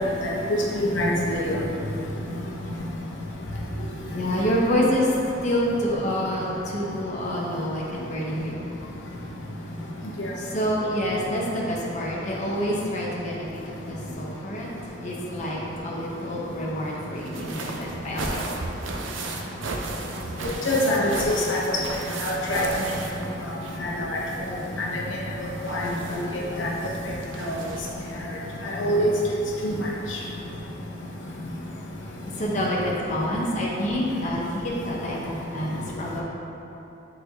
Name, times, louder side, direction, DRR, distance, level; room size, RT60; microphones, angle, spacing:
voice 1, 0.5-1.6 10.2-10.3 20.6-21.6 22.2-22.7 24.1-24.2 24.8-25.0 25.7-25.8 26.1-26.2 26.6-26.7 27.4-27.5 28.7-29.1 29.6-29.7, left 1 dB, 70° left, -3 dB, 0.8 m, -24 dB
voice 2, 4.1-5.2 5.4-8.7 10.4-14.7 15.0-18.5 32.4-36.2, equal, 40° left, -4 dB, 0.8 m, -27 dB
sound 1, 17.1-23.9 24.2-28.1 29.2-29.3 29.6-29.7, right 2 dB, 80° right, 0.6 m, -35 dB
8.1 x 4.3 x 2.8 m, 3.0 s
head